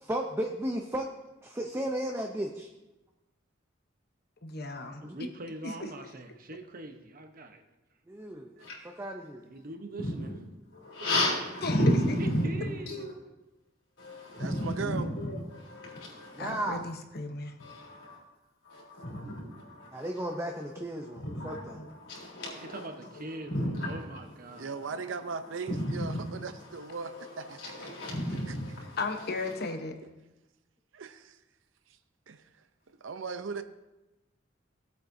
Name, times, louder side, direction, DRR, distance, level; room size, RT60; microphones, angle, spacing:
voice 1, 0.0-1.1 1.4-2.7 5.0-5.2 8.1-8.5 9.0-9.5 16.4-16.9 19.9-21.8, right 1 dB, 15° right, 0.6 m, -34 dB
voice 2, 4.4-5.0 11.6-11.8 16.4-17.5 29.0-29.9, left 3 dB, 55° left, 1.0 m, -35 dB
voice 3, 5.0-7.6 8.6-8.7 9.4-10.4 11.0-11.1 12.2-13.1 22.6-24.8, right 2 dB, 45° right, 1.0 m, -43 dB
voice 4, 10.0-10.4 10.7-13.1 14.0-16.8 17.6-18.2 18.6-20.4 21.0-22.9 23.1-24.0 24.4-29.7, equal, 70° left, 3.8 m, -34 dB
voice 5, 14.4-15.1 24.6-27.9 30.9-31.4 32.3-32.4 33.0-33.6, right 5 dB, 80° right, 0.7 m, -38 dB
17.0 x 8.1 x 2.7 m
head